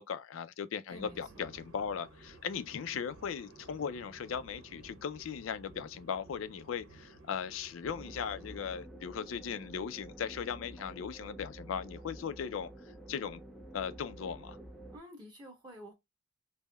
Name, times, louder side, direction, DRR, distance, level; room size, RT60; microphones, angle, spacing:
voice 1, 0.0-12.7 13.1-13.4 13.7-14.6, left 7 dB, 75° left, 0.4 m, -38 dB
voice 2, 0.9-1.5 14.9-15.9, equal, 20° right, 1.4 m, -50 dB
sound 1, 0.9-8.9, right 2 dB, 80° right, 1.0 m, -55 dB
sound 2, 7.8-15.0, right 1 dB, ahead, 0.4 m, -49 dB
5.3 x 2.1 x 2.2 m
head